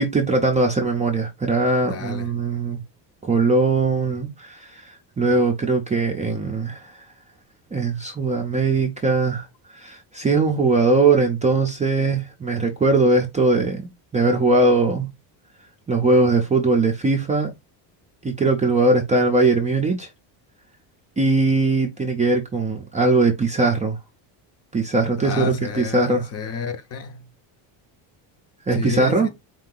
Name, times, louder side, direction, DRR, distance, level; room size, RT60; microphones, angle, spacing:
voice 1, 0.0-2.8 3.2-4.7 5.2-6.9 7.7-9.5 9.7-15.1 15.9-17.5 18.2-20.1 21.2-24.0 24.7-26.3 28.7-29.3, right 3 dB, 15° right, 0.5 m, -20 dB
voice 2, 1.8-2.3 25.2-27.3 28.7-29.3, left 5 dB, 30° left, 0.7 m, -30 dB
4.6 x 2.8 x 3.8 m
cardioid pair, 165°, 50 cm